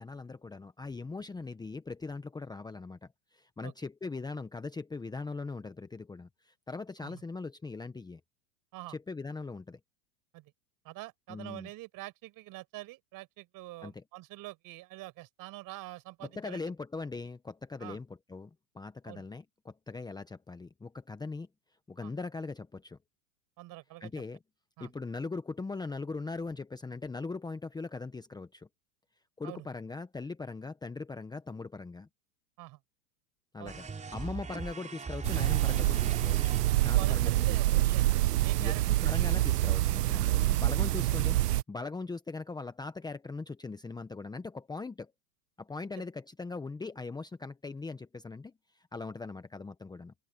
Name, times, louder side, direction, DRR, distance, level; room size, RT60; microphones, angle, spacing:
voice 1, 0.0-8.2 8.9-9.8 11.3-11.7 13.8-14.0 16.3-18.5 18.7-21.5 21.9-23.0 24.0-24.4 24.8-28.7 29.4-32.1 33.5-33.9 34.1-37.8 38.6-45.1 45.6-50.1, left 3 dB, 10° left, 1.1 m, -40 dB
voice 2, 10.8-16.7 17.8-18.0 19.0-19.3 22.0-22.1 23.6-24.1 24.8-24.9 29.4-29.7 32.6-32.8 33.6-33.8 36.9-37.7 37.9-38.1 38.4-38.8 46.0-46.1, right 19 dB, 45° right, 5.9 m, -45 dB
sound 1, 33.7-37.0, right 5 dB, 15° right, 5.4 m, -41 dB
sound 2, 35.2-41.6, right 16 dB, 75° right, 1.0 m, -26 dB
hypercardioid pair, 120°, 47 cm